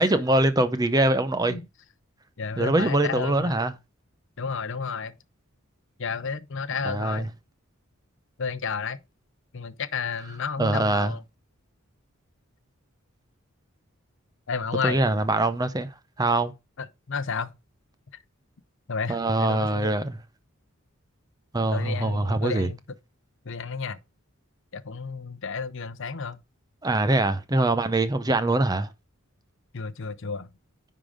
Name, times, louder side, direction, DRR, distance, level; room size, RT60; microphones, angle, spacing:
voice 1, 0.0-1.6 2.6-3.7 6.8-7.3 10.6-11.2 14.8-15.9 16.2-16.5 19.1-20.2 21.5-22.7 26.8-28.9, right 2 dB, 15° right, 0.6 m, -23 dB
voice 2, 2.4-3.6 4.4-5.2 6.0-7.3 8.4-9.0 9.5-11.2 14.5-15.0 16.8-17.5 18.9-20.0 21.7-22.8 23.4-24.0 24.7-26.4 29.7-30.5, left 5 dB, 60° left, 0.7 m, -31 dB
10.0 x 3.8 x 4.9 m
head